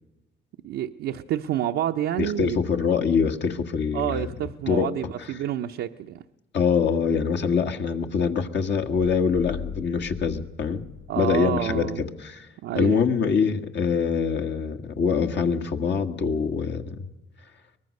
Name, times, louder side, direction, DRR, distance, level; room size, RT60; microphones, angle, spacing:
voice 1, 0.6-2.6 3.9-6.2 11.1-12.0 12.6-13.0, right 11 dB, 80° right, 3 dB, 0.8 m, -28 dB
voice 2, 2.2-4.3 4.7-4.9 6.5-10.8 11.2-12.5 12.8-17.0, left 6 dB, 60° left, 5 dB, 1.8 m, -24 dB
sound 1, 9.3-11.8, left 8 dB, 80° left, 4.5 m, -40 dB
23.5 x 19.5 x 6.6 m, 1.0 s
cardioid pair, 90°, 20 cm